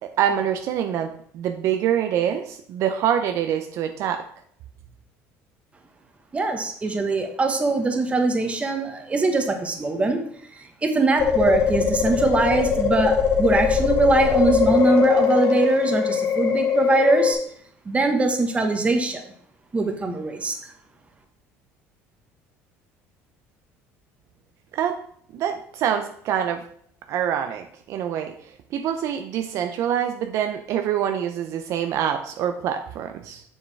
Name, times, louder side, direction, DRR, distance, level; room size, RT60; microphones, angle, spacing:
voice 1, 0.0-4.3 24.7-25.0 25.3-26.6 27.1-33.4, right 9 dB, 60° right, 7 dB, 0.6 m, -25 dB
voice 2, 6.3-10.2 10.5-17.4 17.8-19.2 19.7-20.7, right 3 dB, 20° right, 5 dB, 1.3 m, -22 dB
sound 1, 11.2-17.3, left 7 dB, 60° left, 1.8 m, -21 dB
7.2 x 6.4 x 3.4 m, 0.62 s
supercardioid pair, 105°, 6 cm